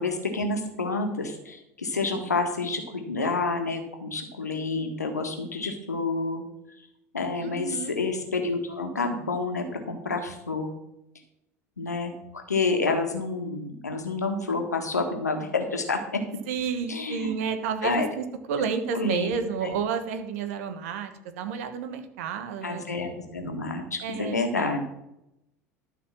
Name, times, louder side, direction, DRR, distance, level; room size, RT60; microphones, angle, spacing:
voice 1, 0.0-6.4 7.1-10.8 11.8-12.1 12.5-16.2 16.9-17.4 17.8-18.1 18.9-19.3 19.6-19.8 22.6-24.8, left 3 dB, 80° left, 5 dB, 1.6 m, -29 dB
voice 2, 7.4-7.9 16.5-22.8 24.0-24.4, right 6 dB, 60° right, 9 dB, 1.4 m, -30 dB
12.5 x 5.1 x 7.2 m, 0.85 s
figure-of-eight pair, 75°, 9 cm